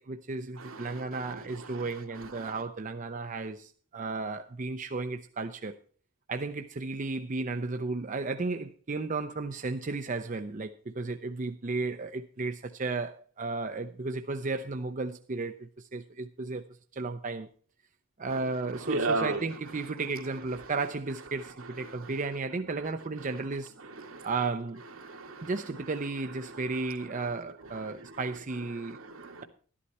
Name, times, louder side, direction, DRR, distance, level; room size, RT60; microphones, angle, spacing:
voice 1, 0.0-5.8 6.3-16.6 16.9-17.5 18.2-23.7 24.2-24.8 25.4-29.0, right 3 dB, 40° right, 0.6 m, -34 dB
voice 2, 0.6-2.6 18.3-19.5 20.6-20.7 21.6-22.1 23.2-23.3 23.8-24.3 25.0-25.5 26.4-26.9 27.1-27.4 27.6-28.2 28.8-29.4, right 3 dB, 75° right, 2.2 m, -37 dB
12.5 x 11.5 x 4.2 m
head